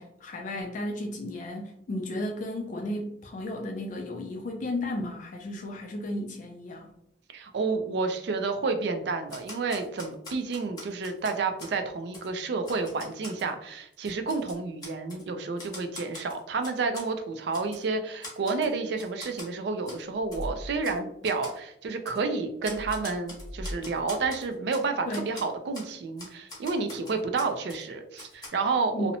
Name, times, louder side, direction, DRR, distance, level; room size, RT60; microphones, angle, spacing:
voice 1, 0.0-6.9 25.1-25.3 28.9-29.2, left 1 dB, 45° left, 2 dB, 0.3 m, -34 dB
voice 2, 7.3-29.2, right 4 dB, 65° right, 6 dB, 0.4 m, -30 dB
Typewriter, 9.3-11.7 12.1-12.3 12.6-13.5 13.9-15.2 15.6-17.1 17.5-17.8 18.2-18.7 19.0-19.5 19.8-20.0 20.3-20.4 20.8-21.0 21.2-21.6 22.0-22.2 22.6-24.8 25.1-25.4 25.7-25.9 26.2-27.8 28.2-28.5, left 2 dB, 20° left, 0.9 m, -43 dB
sound 1, 20.2-20.8 22.6-23.8 24.1-24.3, equal, 25° right, 0.9 m, -38 dB
2.7 x 2.0 x 2.7 m, 0.73 s
head